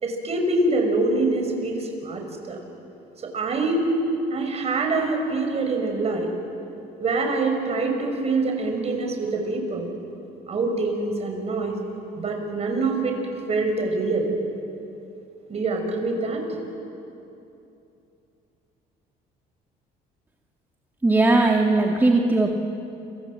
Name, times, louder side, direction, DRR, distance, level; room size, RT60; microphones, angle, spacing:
voice 1, 0.0-2.6 3.2-3.9 4.3-6.3 7.0-9.9 10.5-11.7 12.2-13.2 13.5-14.3 15.5-16.4, right 3 dB, 40° right, 3 dB, 6.0 m, -25 dB
voice 2, 21.0-22.6, right 2 dB, 10° right, 0 dB, 1.8 m, -19 dB
29.5 x 24.5 x 7.6 m, 2.8 s
cardioid pair, 110°, 17 cm